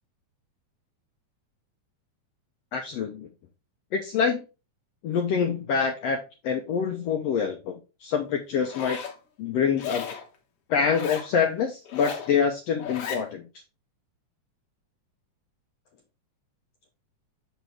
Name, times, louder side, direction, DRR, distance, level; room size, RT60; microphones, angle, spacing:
voice 1, 2.7-3.3 3.9-4.4 5.0-9.0 9.4-10.0 10.7-13.4, left 6 dB, 75° left, 4 dB, 1.5 m, -26 dB
Zipper (clothing), 8.6-9.2 9.8-10.3 10.8-11.3 11.8-12.3 12.8-13.2, left 7 dB, 60° left, 1.8 m, -35 dB
6.1 x 5.2 x 3.4 m, 0.29 s
omnidirectional pair, 3.5 m